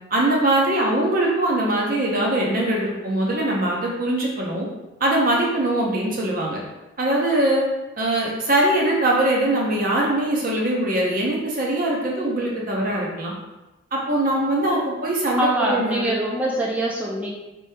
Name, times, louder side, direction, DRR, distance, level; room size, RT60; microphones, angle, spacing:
voice 1, 0.1-4.7 5.0-6.6 7.0-7.7 8.0-13.3 13.9-16.1, right 1 dB, 40° right, -2 dB, 0.7 m, -22 dB
voice 2, 15.4-17.3, right 1 dB, 5° right, -4 dB, 0.4 m, -24 dB
3.0 x 2.8 x 3.4 m, 1.0 s
head